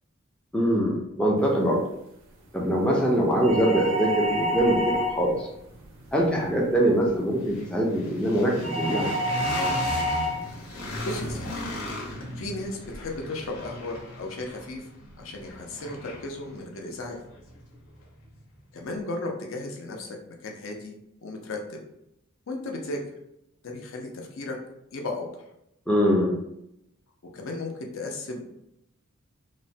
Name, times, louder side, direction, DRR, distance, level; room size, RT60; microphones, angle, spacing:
voice 1, 0.5-1.8 2.5-5.5 6.1-9.1 25.9-26.3, equal, 5° left, -2 dB, 0.3 m, -23 dB
sound 1, 1.9-2.0 2.4-18.4, left 1 dB, 85° left, 0.8 m, -38 dB
sound 2, 3.4-5.4 8.6-10.4, equal, 65° right, 0.4 m, -27 dB
voice 2, 10.6-11.6 12.4-14.8 15.2-17.2 18.7-20.2 20.4-21.0 21.2-21.8 22.5-23.0 23.6-24.6 24.9-25.4 27.3-28.6, left 2 dB, 65° left, 1 dB, 0.5 m, -35 dB
3.0 x 2.1 x 2.6 m, 0.80 s
head